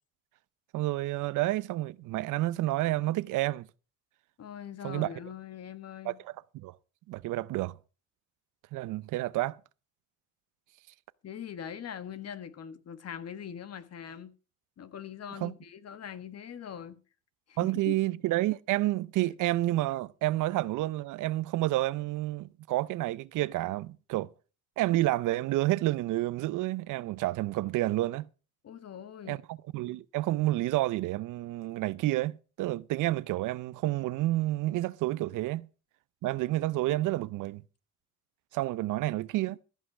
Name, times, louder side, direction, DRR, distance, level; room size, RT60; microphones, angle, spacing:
voice 1, 0.7-3.7 4.8-5.1 6.0-6.8 7.1-7.7 8.7-9.6 15.4-15.5 17.6-24.3 24.8-28.3 29.3-35.7 36.2-37.6 38.5-39.6, right 17 dB, 85° right, 0.6 m, -29 dB
voice 2, 4.4-6.2 11.2-14.3 14.8-17.0 17.5-18.0 28.6-29.4, left 8 dB, 55° left, 1.4 m, -42 dB
14.5 x 5.6 x 7.3 m
cardioid pair, 90°, 30 cm